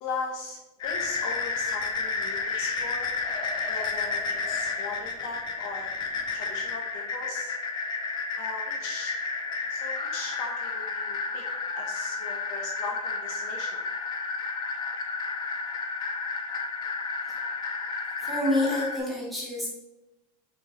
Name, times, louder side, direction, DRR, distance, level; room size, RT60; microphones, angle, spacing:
voice 1, 0.0-3.1 3.6-6.0 6.3-7.5 8.4-9.1 9.7-11.4 11.7-13.8, left 3 dB, 45° left, 1 dB, 0.9 m, -38 dB
sound 1, 0.8-19.0, left 4 dB, 20° left, 0.6 m, -31 dB
voice 2, 18.2-19.7, left 1 dB, ahead, -7 dB, 1.6 m, -28 dB
5.8 x 4.5 x 4.1 m, 1.0 s
supercardioid pair, 175°, 21 cm